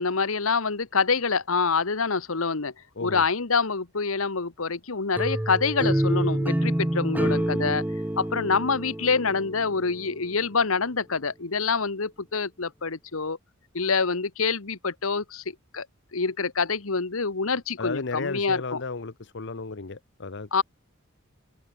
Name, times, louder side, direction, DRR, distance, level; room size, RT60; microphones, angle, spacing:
voice 1, 0.0-2.7 3.0-7.8 8.2-13.4 13.7-15.9 16.1-18.8 20.5-20.6, left 4 dB, 75° left, 1.3 m, -26 dB
sound 1, 5.2-10.1, right 1 dB, 10° right, 0.5 m, -27 dB
voice 2, 7.2-7.8 17.8-20.5, left 3 dB, 55° left, 1.0 m, -34 dB
head